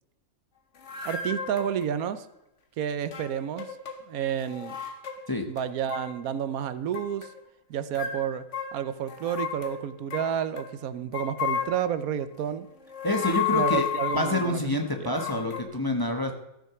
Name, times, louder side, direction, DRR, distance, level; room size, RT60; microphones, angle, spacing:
sound 1, 0.8-1.9 3.0-4.0 4.3-5.3 5.6-6.2 6.9-7.4 7.9-10.7 11.1-12.0 12.8-14.6 15.1-15.6, left 8 dB, 55° left, 1.4 m, -33 dB
voice 1, 1.0-2.3 2.8-3.8 4.1-4.8 5.4-7.3 7.7-8.4 8.7-12.7 13.5-14.7 15.0-15.2, right 9 dB, 75° right, 13 dB, 1.1 m, -30 dB
voice 2, 13.0-16.3, left 1 dB, 15° left, 3 dB, 1.1 m, -27 dB
14.0 x 6.4 x 5.9 m, 0.89 s
omnidirectional pair, 1.6 m